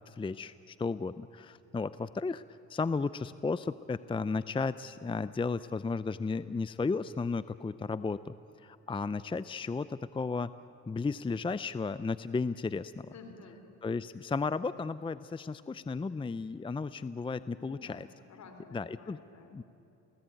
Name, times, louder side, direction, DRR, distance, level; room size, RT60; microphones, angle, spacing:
voice 1, 0.0-2.4 2.7-8.3 8.6-10.5 10.9-13.1 13.8-18.1 18.7-19.2 19.5-19.6, left 4 dB, 15° left, 15 dB, 0.5 m, -34 dB
voice 2, 13.1-13.6 17.5-19.6, left 4 dB, 65° left, 6 dB, 3.8 m, -52 dB
29.0 x 18.5 x 9.2 m, 2.9 s
cardioid pair, 90°, 30 cm